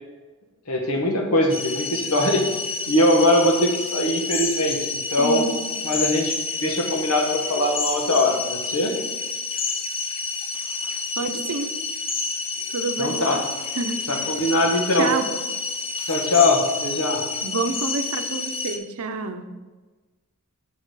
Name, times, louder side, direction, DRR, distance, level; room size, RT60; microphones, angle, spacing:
voice 1, 0.7-2.4 2.9-5.5 5.8-6.3 6.6-8.9 13.0-13.4 14.1-15.1 16.1-17.2, left 1 dB, 90° left, 2 dB, 1.3 m, -21 dB
sound 1, 1.5-18.8, left 4 dB, 25° left, 0.6 m, -29 dB
voice 2, 5.2-5.8 11.2-11.7 12.7-13.3 13.7-14.0 14.9-15.3 17.4-19.4, right 4 dB, 80° right, 7 dB, 0.7 m, -28 dB
6.7 x 6.2 x 4.8 m, 1.3 s
head